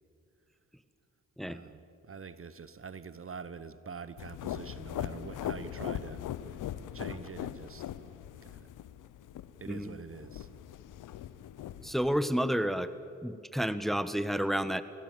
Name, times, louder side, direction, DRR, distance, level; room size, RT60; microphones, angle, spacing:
voice 1, 1.4-6.2 6.9-7.9 8.4-8.7 9.6-10.5, right 5 dB, 45° right, 14 dB, 1.1 m, -45 dB
sound 1, 4.2-12.2, left 11 dB, 75° left, 0.8 m, -40 dB
voice 2, 11.8-12.9 13.2-14.8, equal, ahead, 12 dB, 1.2 m, -30 dB
27.0 x 18.0 x 7.7 m, 2.6 s
supercardioid pair, 45°, 31 cm